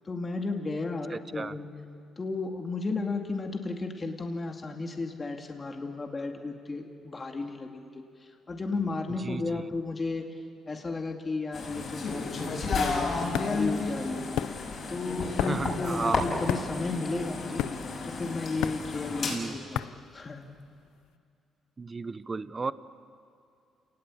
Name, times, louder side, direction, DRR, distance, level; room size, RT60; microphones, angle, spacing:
voice 1, 0.1-1.7 2.2-8.0 8.5-10.3 10.7-14.3 14.9-17.7 18.1-20.5, left 3 dB, 30° left, 3 dB, 2.4 m, -33 dB
voice 2, 1.1-1.5 9.2-9.6 15.4-16.2 19.3-19.6 21.8-22.7, right 4 dB, 30° right, 15 dB, 0.8 m, -33 dB
sound 1, 11.5-19.4, left 3 dB, 55° left, 6.5 m, -32 dB
sound 2, 13.3-20.9, left 12 dB, 90° left, 0.5 m, -35 dB
29.0 x 19.0 x 8.6 m, 2.4 s
cardioid pair, 90°, 0 cm